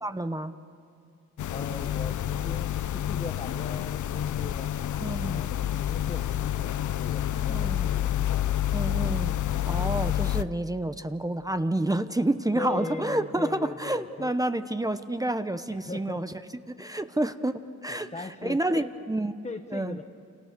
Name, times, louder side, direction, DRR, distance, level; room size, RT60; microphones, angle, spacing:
voice 1, 0.0-0.5 5.0-5.4 7.5-7.9 8.7-9.3 9.7-16.3 16.7-19.3 19.7-20.0, right 1 dB, 10° right, 10 dB, 0.9 m, -29 dB
sound 1, 1.4-10.4, left 11 dB, 80° left, 0.7 m, -28 dB
voice 2, 1.5-4.7 5.3-8.5 12.5-14.3 15.7-16.2 16.7-16.8 17.9-18.8 19.4-20.0, left 3 dB, 25° left, 5 dB, 1.1 m, -39 dB
29.5 x 28.5 x 6.8 m, 2.5 s
cardioid pair, 95°, 30 cm